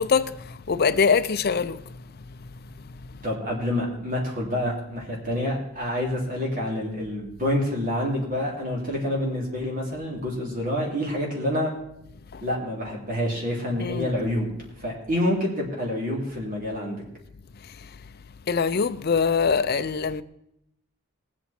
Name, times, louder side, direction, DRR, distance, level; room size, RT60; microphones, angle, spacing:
voice 1, 0.0-1.8 12.3-12.4 13.8-14.1 18.5-20.2, left 5 dB, 45° left, 0.5 m, -23 dB
voice 2, 3.2-11.7 12.4-14.5 14.8-17.0, left 1 dB, 40° right, 3.2 m, -27 dB
19.0 x 8.6 x 4.4 m
head